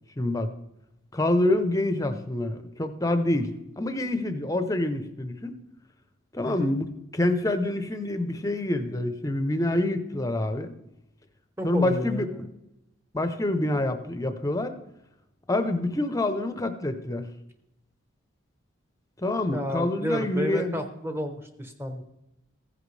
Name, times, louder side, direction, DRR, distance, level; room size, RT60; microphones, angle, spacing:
voice 1, 0.2-0.5 1.1-3.5 3.8-5.5 6.3-10.7 11.6-12.5 13.1-14.8 15.5-17.3 19.2-20.8, left 1 dB, 15° left, 9 dB, 0.7 m, -26 dB
voice 2, 6.4-6.8 11.6-12.4 19.5-22.0, equal, 10° right, 7 dB, 0.9 m, -31 dB
15.0 x 10.5 x 3.3 m, 0.89 s
head